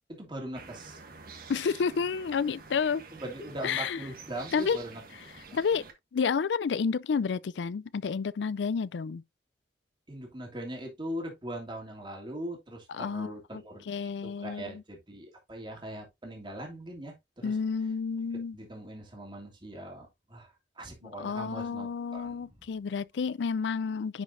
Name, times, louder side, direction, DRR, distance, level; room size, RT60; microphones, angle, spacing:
voice 1, 0.2-1.0 3.1-5.0 5.5-5.6 10.1-17.6 18.5-22.5, right 1 dB, 25° right, 2.6 m, -41 dB
sound 1, 0.5-5.9, right 4 dB, 55° right, 1.6 m, -48 dB
voice 2, 1.5-3.0 3.6-4.0 4.5-4.8 5.5-5.8 6.1-9.2 12.9-14.8 17.4-18.6 21.0-24.2, left 6 dB, 80° left, 0.4 m, -30 dB
10.5 x 5.2 x 2.6 m
head